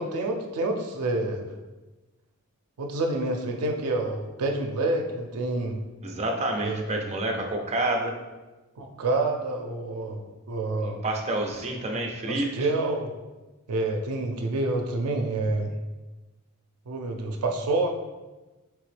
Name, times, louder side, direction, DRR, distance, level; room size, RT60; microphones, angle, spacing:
voice 1, 0.0-1.4 2.8-5.8 6.6-6.8 8.8-11.0 12.3-13.1 13.7-15.7 16.9-18.0, right 2 dB, 85° right, 3 dB, 0.4 m, -28 dB
voice 2, 6.0-8.1 10.8-12.7, right 1 dB, 30° right, 2 dB, 0.5 m, -28 dB
3.5 x 2.9 x 3.2 m, 1.1 s
head